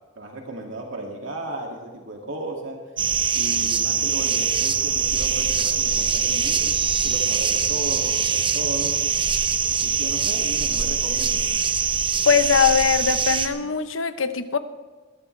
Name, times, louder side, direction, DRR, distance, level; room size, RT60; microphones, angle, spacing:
voice 1, 0.2-2.8 3.4-6.7 7.0-9.0 9.8-11.4, right 1 dB, 80° right, 0 dB, 2.4 m, -35 dB
sound 1, 3.0-13.5, right 6 dB, 25° right, 0.9 m, -23 dB
voice 2, 12.3-14.6, left 7 dB, 90° left, 10 dB, 1.0 m, -21 dB
21.0 x 13.5 x 3.3 m, 1.4 s
head